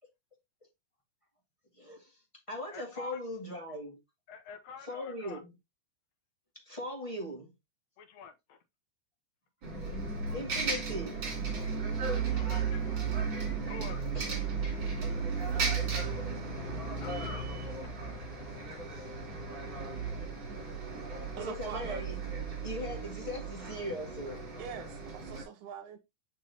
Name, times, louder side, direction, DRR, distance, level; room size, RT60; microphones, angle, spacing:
voice 1, 1.8-2.1 2.5-4.0 4.8-5.5 6.6-7.5 10.3-11.2 14.1-14.5 19.0-19.2 21.3-22.1 22.6-24.5, left 1 dB, 15° left, 1.4 m, -39 dB
voice 2, 2.7-3.2 4.3-5.4 8.0-8.6 11.9-12.9 13.6-14.1 17.0-17.6, left 6 dB, 70° left, 1.7 m, -47 dB
Bus, 9.6-25.4, right 5 dB, 40° right, 3.1 m, -35 dB
voice 3, 21.4-22.0 24.6-26.0, right 8 dB, 75° right, 2.2 m, -43 dB
6.5 x 5.6 x 2.8 m
omnidirectional pair, 3.6 m